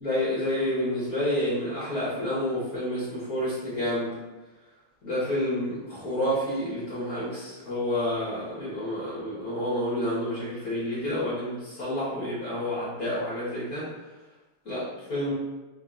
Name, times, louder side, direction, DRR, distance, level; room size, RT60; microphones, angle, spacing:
voice 1, 0.0-4.1 5.0-13.9 14.6-14.8 15.1-15.3, left 1 dB, 55° left, -9 dB, 1.5 m, -29 dB
3.5 x 2.8 x 3.6 m, 1.1 s
omnidirectional pair, 2.1 m